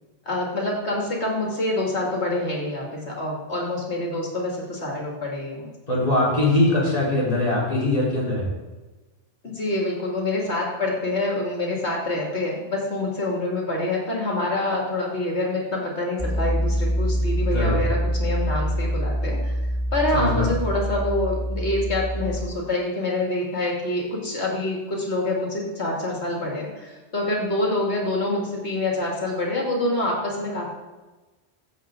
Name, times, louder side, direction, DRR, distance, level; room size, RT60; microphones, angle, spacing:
voice 1, 0.3-5.7 9.4-19.5 19.9-30.7, left 2 dB, 90° left, -1 dB, 2.8 m, -26 dB
voice 2, 5.9-8.5 17.5-17.8 20.1-20.5, left 2 dB, 35° left, -6 dB, 4.0 m, -22 dB
Piano, 16.2-22.5, equal, 5° right, 0.6 m, -25 dB
14.5 x 7.7 x 3.8 m, 1.2 s
omnidirectional pair, 1.1 m